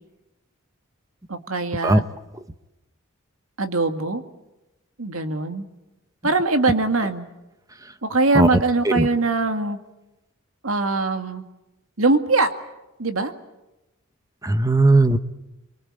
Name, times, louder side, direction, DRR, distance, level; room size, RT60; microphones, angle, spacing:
voice 1, 1.3-2.1 3.6-4.2 5.0-5.7 6.2-7.3 8.0-9.8 10.6-11.4 12.0-12.5 13.0-13.3, right 3 dB, 70° right, 8 dB, 2.0 m, -22 dB
voice 2, 14.4-15.2, right 2 dB, 15° right, 11 dB, 1.0 m, -17 dB
24.5 x 23.5 x 8.8 m, 0.97 s
head